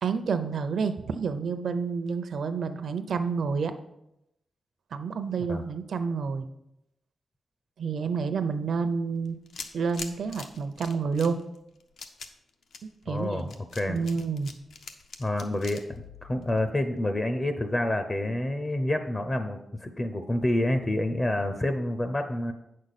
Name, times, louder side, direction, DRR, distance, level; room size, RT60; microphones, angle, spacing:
voice 1, 0.0-3.7 4.9-6.4 7.8-9.4 9.7-11.4 12.8-13.5 13.9-14.5, right 5 dB, 65° right, 9 dB, 0.6 m, -29 dB
sound 1, 9.2-17.0, left 5 dB, 80° left, 0.8 m, -44 dB
voice 2, 13.1-14.0 15.2-15.8 16.2-22.5, left 1 dB, 20° left, 8 dB, 0.5 m, -28 dB
8.8 x 6.5 x 4.1 m, 0.85 s
wide cardioid pair, 150°, 0 cm